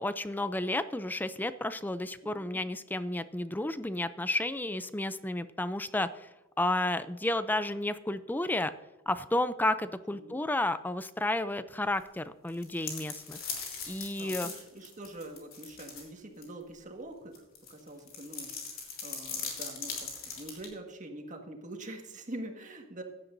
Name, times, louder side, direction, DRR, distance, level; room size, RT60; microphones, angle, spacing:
voice 1, 0.0-6.3 6.6-8.7 9.1-13.4 13.9-14.5, left 1 dB, 10° left, 13 dB, 0.4 m, -32 dB
voice 2, 2.2-2.6 10.1-10.4 14.2-23.0, right 1 dB, 40° right, 3 dB, 1.6 m, -45 dB
sound 1, 12.5-16.1 16.4-16.5 17.3-20.7, left 5 dB, 75° left, 3.4 m, -39 dB
16.0 x 11.0 x 2.6 m, 1.1 s
head